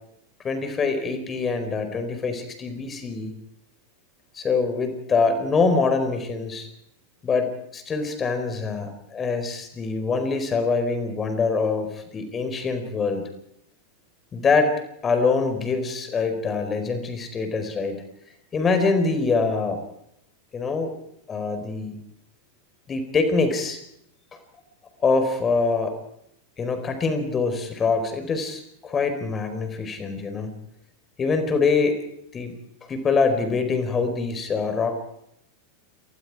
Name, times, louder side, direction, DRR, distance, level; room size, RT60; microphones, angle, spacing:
voice 1, 0.4-3.3 4.3-6.7 7.2-13.2 14.3-14.7 15.0-18.0 18.5-19.8 20.5-20.9 21.3-22.0 22.9-23.8 25.0-25.9 26.6-30.6 31.2-32.0 32.3-32.5 32.8-34.9, left 4 dB, 25° left, 8 dB, 4.6 m, -24 dB
28.0 x 20.0 x 4.9 m, 0.77 s
figure-of-eight pair, 90°, 0 cm